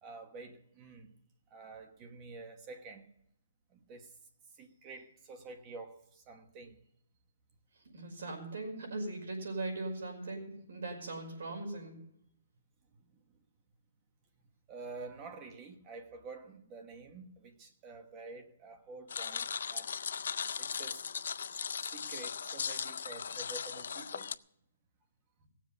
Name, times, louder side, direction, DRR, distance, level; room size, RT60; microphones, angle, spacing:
voice 1, 0.0-1.1 1.5-3.1 3.7-4.1 4.6-6.8 14.7-20.1 20.6-21.0 21.8-24.3, right 3 dB, 20° right, 1.2 m, -49 dB
voice 2, 7.9-12.0, right 2 dB, 65° right, 5.5 m, -39 dB
sound 1, 19.1-24.3, left 6 dB, 65° left, 0.4 m, -38 dB
17.5 x 7.5 x 6.6 m
hypercardioid pair, 175°, 0 cm